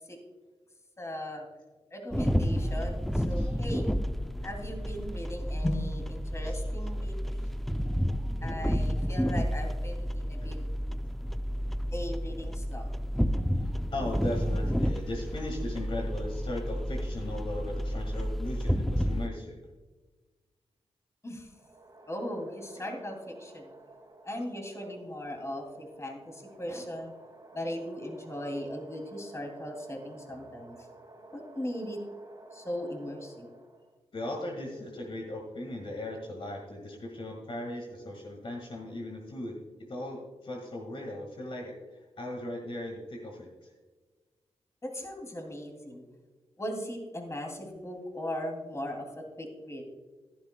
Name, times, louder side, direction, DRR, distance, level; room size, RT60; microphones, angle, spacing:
voice 1, 1.0-1.5 1.9-3.9 4.4-7.5 8.4-10.6 11.9-12.9 21.2-21.5 22.1-23.7 24.2-27.1 27.5-30.9 31.3-32.0 32.5-33.5 44.8-46.0 46.6-49.8, left 1 dB, 25° left, 2 dB, 2.7 m, -38 dB
sound 1, 2.1-19.3, equal, ahead, 0.5 m, -31 dB
voice 2, 13.6-19.7 22.7-22.8 34.1-39.5 39.9-43.7, left 1 dB, 50° left, 1 dB, 1.8 m, -38 dB
sound 2, 21.5-34.0, right 2 dB, 30° right, 2.1 m, -53 dB
14.5 x 11.0 x 2.2 m, 1.3 s
cardioid pair, 60°, 11 cm